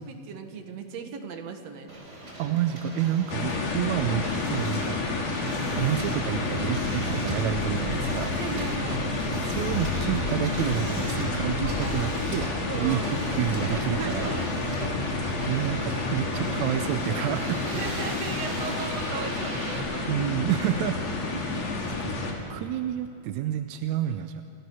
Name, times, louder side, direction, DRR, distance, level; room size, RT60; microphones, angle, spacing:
voice 1, 0.0-1.9 8.4-9.1 12.7-13.1 13.7-14.9 17.8-20.1, right 5 dB, 55° right, 5 dB, 2.4 m, -37 dB
Hiss, 1.9-19.8, right 1 dB, 20° right, 3.7 m, -38 dB
voice 2, 2.4-5.0 5.8-8.3 9.4-12.5 12.7-14.4 15.5-17.6 20.1-21.0 21.3-22.1 22.5-24.4, right 11 dB, 80° right, 8 dB, 1.7 m, -29 dB
sound 1, 3.3-22.3, left 3 dB, 50° left, 3.2 m, -29 dB
29.0 x 15.5 x 6.2 m, 2.5 s
omnidirectional pair, 3.9 m